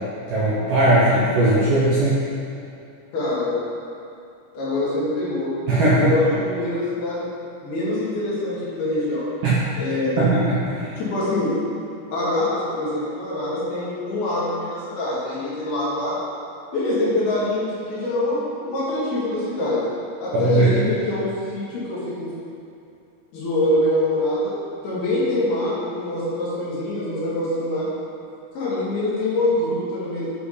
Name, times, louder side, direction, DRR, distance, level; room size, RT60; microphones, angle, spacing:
voice 1, 0.3-2.2 5.7-6.1 9.4-9.6 10.2-10.9 20.6-20.8, right 2 dB, 80° right, -9 dB, 1.9 m, -18 dB
voice 2, 3.1-3.5 4.5-5.5 6.0-7.3 7.6-9.3 9.8-10.2 11.0-11.5 12.1-16.2 16.7-19.9 20.2-22.3 23.3-24.5 24.8-27.9 28.5-30.3, left 1 dB, 60° left, -9 dB, 3.9 m, -24 dB
9.4 x 5.0 x 5.1 m, 2.6 s
omnidirectional pair, 5.6 m